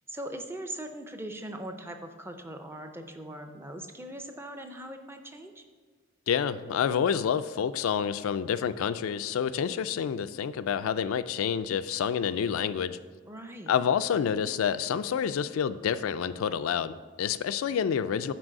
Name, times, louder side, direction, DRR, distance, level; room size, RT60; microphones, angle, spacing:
voice 1, 0.1-5.7 13.3-13.7, right 1 dB, 10° right, 6 dB, 0.4 m, -40 dB
voice 2, 6.3-13.0 13.7-18.3, left 7 dB, 80° left, 12 dB, 0.3 m, -28 dB
6.1 x 4.7 x 6.3 m, 1.5 s
head